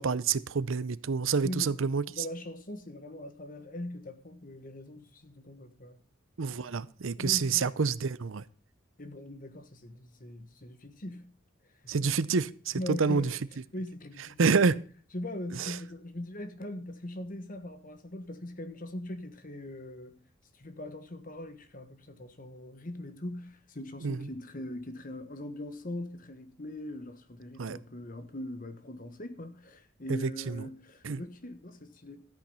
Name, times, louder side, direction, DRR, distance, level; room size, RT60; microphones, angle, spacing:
voice 1, 0.0-2.2 6.4-8.4 11.9-13.3 14.4-14.8 15.6-15.7 24.0-24.2 27.6-27.8 31.0-31.2, right 5 dB, 70° right, 0.6 m, -28 dB
voice 2, 1.4-6.0 7.2-7.7 9.0-11.4 11.8-12.2 12.7-13.4 13.7-14.5 15.1-20.2 20.5-32.2, left 1 dB, 40° left, 1.4 m, -41 dB
13.5 x 8.9 x 5.6 m
head